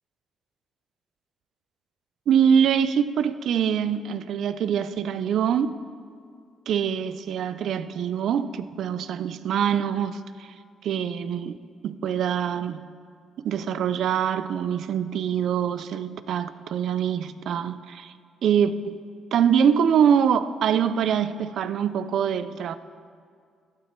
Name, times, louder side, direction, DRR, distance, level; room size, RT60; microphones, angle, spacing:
voice 1, 2.3-5.7 6.7-10.5 10.8-11.6 11.8-12.8 13.4-18.1 18.4-19.0 19.3-22.8, right 8 dB, 70° right, 14 dB, 0.4 m, -24 dB
15.0 x 8.6 x 4.4 m, 2.2 s
cardioid pair, 90°, 0 cm